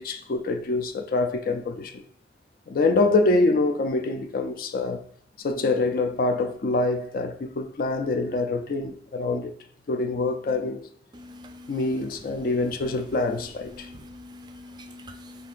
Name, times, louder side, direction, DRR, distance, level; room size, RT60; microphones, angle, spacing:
voice 1, 0.0-2.0 2.7-5.0 5.4-9.5 9.9-10.9 11.7-13.9, left 2 dB, 50° left, 0.4 m, -25 dB
voice 2, 11.1-11.7 13.8-15.5, left 1 dB, 25° right, 0.3 m, -44 dB
5.3 x 3.2 x 2.5 m
head